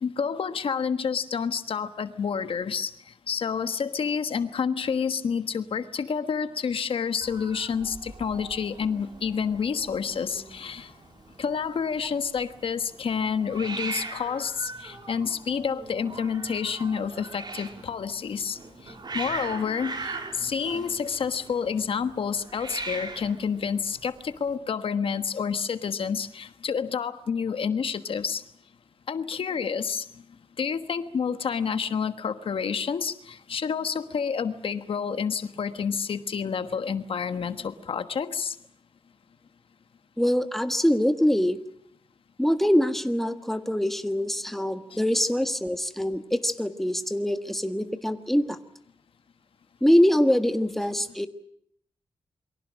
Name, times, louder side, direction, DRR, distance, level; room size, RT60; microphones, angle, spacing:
voice 1, 0.0-2.9 3.3-10.9 11.4-18.6 18.9-28.4 29.1-30.0 30.6-38.6 44.9-45.0, left 6 dB, 75° left, 10 dB, 1.3 m, -29 dB
Hiss, 7.2-24.5, right 3 dB, 50° right, 3.7 m, -40 dB
voice 2, 40.2-41.6 42.4-48.6 49.8-51.3, equal, 5° left, 8 dB, 1.5 m, -24 dB
28.5 x 23.5 x 6.3 m, 0.67 s
wide cardioid pair, 125°, 9 cm